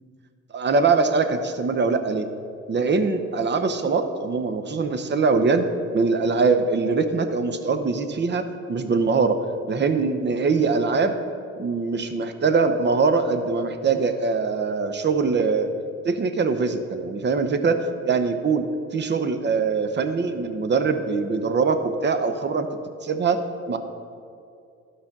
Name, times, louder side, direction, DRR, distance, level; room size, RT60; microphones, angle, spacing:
voice 1, 0.5-2.3 2.7-5.6 5.9-9.4 9.7-11.2 11.6-15.7 16.0-22.7 23.0-23.4 23.7-23.8, right 4 dB, 35° right, 9 dB, 0.8 m, -22 dB
12.5 x 5.0 x 5.9 m, 2.5 s
cardioid pair, 90°, 30 cm